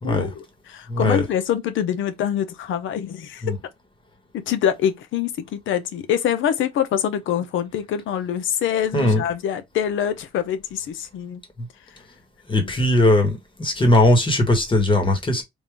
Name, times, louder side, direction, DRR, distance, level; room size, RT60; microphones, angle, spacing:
voice 1, 0.0-3.4 4.3-11.4, left 9 dB, 80° left, 0.8 m, -25 dB
voice 2, 0.9-1.2 3.4-3.5 8.9-9.2 12.5-15.4, left 1 dB, 25° left, 1.5 m, -19 dB
3.6 x 2.5 x 3.5 m
cardioid pair, 90°, 20 cm